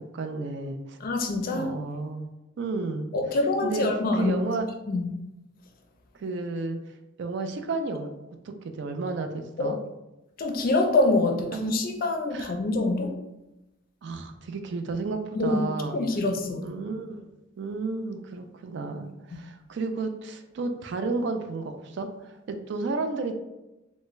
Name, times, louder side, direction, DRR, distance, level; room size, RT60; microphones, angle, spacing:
voice 1, 0.1-1.0 1.5-2.3 2.6-3.1 3.6-3.9 4.2-4.7 6.2-6.8 7.2-8.1 8.4-9.8 11.5-11.8 12.3-12.5 14.0-16.0 16.6-17.3 17.6-23.3, right 3 dB, 65° right, 7 dB, 0.4 m, -32 dB
voice 2, 1.0-1.7 3.1-4.4 4.9-5.1 9.6-9.7 10.4-13.1 15.4-16.7 19.3-19.4, left 2 dB, 50° left, 4 dB, 0.4 m, -25 dB
3.4 x 2.1 x 3.1 m, 0.98 s
head